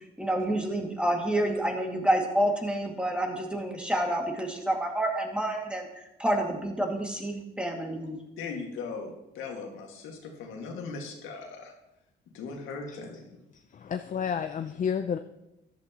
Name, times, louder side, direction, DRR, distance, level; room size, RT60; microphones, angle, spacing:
voice 1, 0.2-8.2, right 1 dB, 5° right, 1 dB, 2.1 m, -28 dB
voice 2, 8.4-11.7 12.3-13.4, left 4 dB, 90° left, 2 dB, 2.0 m, -39 dB
voice 3, 13.7-15.2, left 7 dB, 40° left, 8 dB, 0.6 m, -30 dB
13.5 x 11.5 x 3.0 m, 0.91 s
cardioid pair, 90°, 20 cm